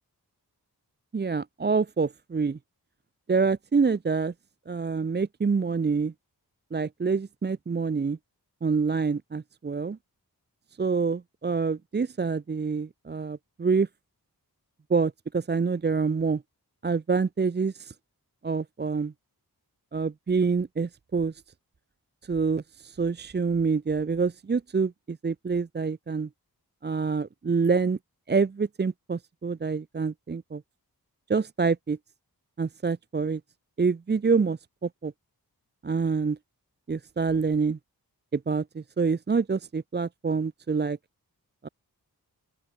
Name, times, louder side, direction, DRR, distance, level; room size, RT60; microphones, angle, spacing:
voice 1, 1.1-2.6 3.3-4.3 4.7-6.1 6.7-8.2 8.6-10.0 10.8-13.9 14.9-16.4 16.8-17.9 18.4-19.1 19.9-21.4 22.2-26.3 26.8-28.0 28.3-30.6 31.3-32.0 32.6-33.4 33.8-35.1 35.8-36.4 36.9-37.8 38.3-41.0 41.6-41.7, right 5 dB, 30° right, 0.5 m, -26 dB
open air
wide cardioid pair, 65°, 38 cm